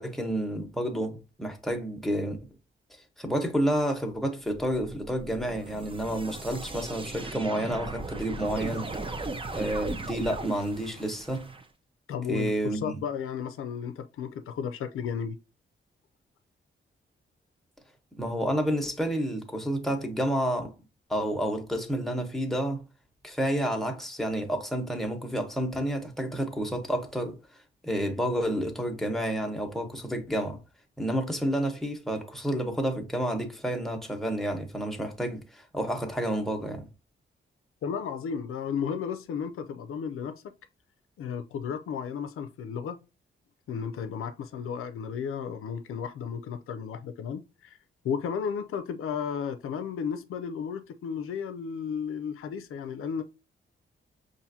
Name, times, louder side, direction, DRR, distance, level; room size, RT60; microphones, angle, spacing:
voice 1, 0.0-2.4 3.2-8.9 9.5-11.5 12.3-12.9 18.2-20.7 21.1-22.8 23.2-27.4 27.8-30.6 31.0-36.9, right 1 dB, ahead, 1.1 m, -30 dB
sound 1, 4.5-11.6, right 2 dB, 25° right, 0.6 m, -37 dB
voice 2, 12.1-15.4 37.8-40.5 41.2-43.0 43.7-47.8 48.0-53.2, left 7 dB, 90° left, 0.4 m, -34 dB
5.5 x 2.6 x 2.6 m
cardioid pair, 80°, 21 cm